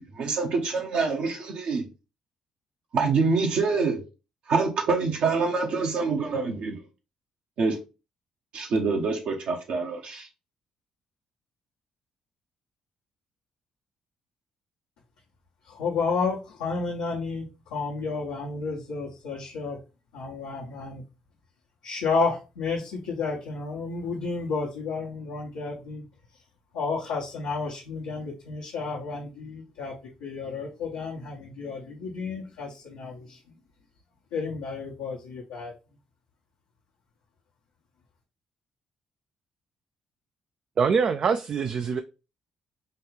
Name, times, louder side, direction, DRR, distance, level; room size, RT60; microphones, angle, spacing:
voice 1, 0.0-1.9 2.9-4.0 4.5-6.8 7.6-7.8 8.5-10.3, right 4 dB, 70° right, 1.0 m, -26 dB
voice 2, 15.7-19.8 20.1-21.0 21.8-26.0 26.7-29.9 30.2-33.5 34.3-35.7, left 4 dB, 85° left, 1.0 m, -31 dB
voice 3, 40.8-42.0, right 6 dB, 55° right, 0.4 m, -24 dB
4.5 x 2.3 x 3.2 m
hypercardioid pair, 55°, 2 cm